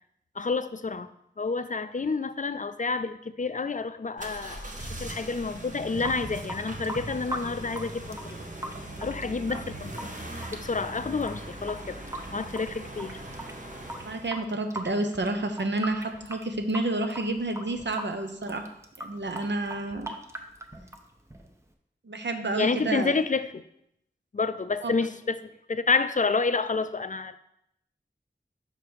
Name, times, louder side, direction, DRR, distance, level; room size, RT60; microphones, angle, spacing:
voice 1, 0.4-1.1 1.4-8.4 9.0-10.1 10.5-12.0 12.3-13.2 22.6-23.6 24.3-27.4, left 4 dB, 45° left, 0.4 m, -29 dB
sound 1, 4.2-14.3, right 1 dB, 45° right, 1.1 m, -40 dB
Water tap faucet / Sink (filling or washing) / Drip, 5.8-21.7, right 1 dB, 15° right, 0.8 m, -41 dB
voice 2, 14.0-18.7 19.0-20.2 22.0-23.1 24.8-24.9, right 2 dB, 75° right, 0.8 m, -30 dB
5.8 x 5.1 x 4.7 m
wide cardioid pair, 45°, 19 cm